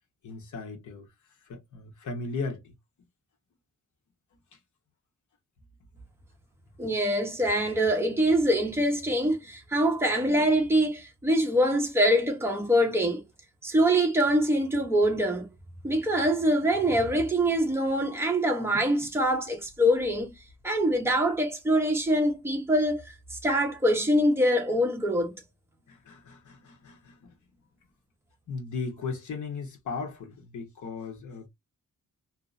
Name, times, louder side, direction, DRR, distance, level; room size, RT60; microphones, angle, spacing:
voice 1, 0.2-1.1 1.5-2.7 25.9-27.3 28.5-31.5, left 4 dB, 70° left, 0.9 m, -37 dB
voice 2, 6.8-13.2 13.6-15.5 15.8-20.3 20.6-23.1 23.4-25.4, equal, 10° right, 0.5 m, -24 dB
2.6 x 2.0 x 2.4 m
wide cardioid pair, 165°, 31 cm